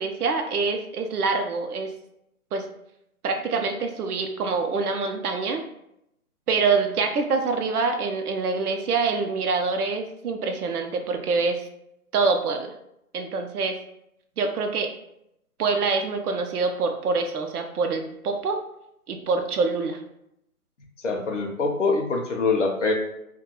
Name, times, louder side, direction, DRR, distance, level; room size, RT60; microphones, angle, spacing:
voice 1, 0.0-1.9 2.5-2.7 3.2-5.6 6.5-11.6 12.1-12.7 13.1-13.8 14.4-14.9 15.6-18.6 19.1-20.0, right 4 dB, 80° right, 5 dB, 0.6 m, -25 dB
voice 2, 21.0-22.9, left 3 dB, 55° left, 2 dB, 0.5 m, -24 dB
2.2 x 2.2 x 2.9 m, 0.79 s
hypercardioid pair, 175°, 45 cm